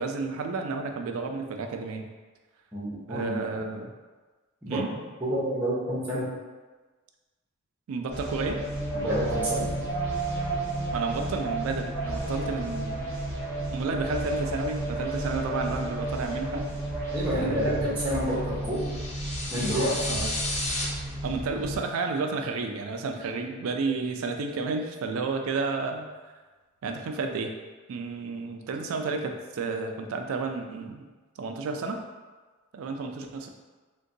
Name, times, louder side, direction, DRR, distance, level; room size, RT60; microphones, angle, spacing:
voice 1, 0.0-2.1 3.1-3.9 4.7-4.9 7.9-8.6 10.9-13.1 13.7-16.7 17.3-17.9 20.1-20.3 21.2-26.1 26.8-27.5 27.9-31.1 31.4-32.0 32.7-33.5, right 4 dB, 75° right, 5 dB, 0.3 m, -31 dB
voice 2, 2.7-3.4 4.6-4.8 5.2-6.3 8.9-9.7 17.1-18.9 19.5-20.2, equal, 10° right, -9 dB, 0.7 m, -29 dB
sound 1, 8.1-21.8, right 2 dB, 10° left, 1.1 m, -32 dB
sound 2, 18.7-20.9, left 2 dB, 30° left, 0.4 m, -32 dB
3.6 x 2.2 x 2.6 m, 1.3 s
head